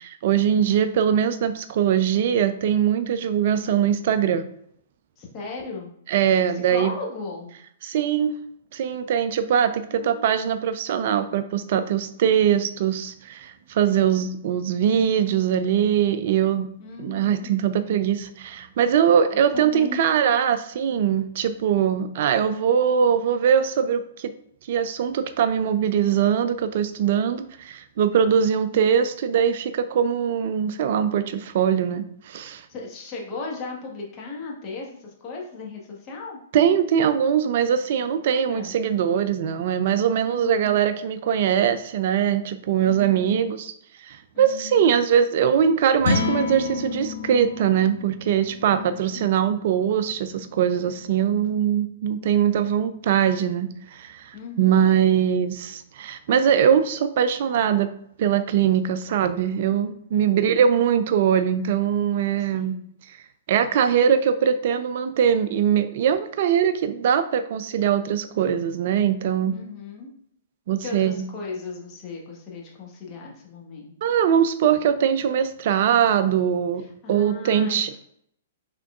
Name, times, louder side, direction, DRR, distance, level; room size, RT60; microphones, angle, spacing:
voice 1, 0.0-4.5 6.1-6.9 7.8-8.4 8.7-16.7 17.0-24.3 24.7-32.7 36.5-43.7 44.0-57.9 58.2-62.8 63.1-63.2 63.5-69.6 70.7-71.3 74.0-78.0, right 8 dB, 50° right, 11 dB, 0.3 m, -22 dB
voice 2, 5.2-5.9 6.5-7.5 9.9-10.4 16.8-17.5 19.5-20.0 32.7-36.4 38.3-38.8 40.2-40.7 42.8-43.4 44.3-44.8 48.7-49.2 54.3-54.8 60.1-60.6 62.4-62.9 69.5-70.1 70.8-73.9 77.0-78.0, left 4 dB, 30° left, -2 dB, 1.3 m, -37 dB
sound 1, 46.0-52.3, left 3 dB, 60° left, 1.0 m, -31 dB
5.6 x 3.6 x 2.4 m, 0.70 s
figure-of-eight pair, 110°, 0 cm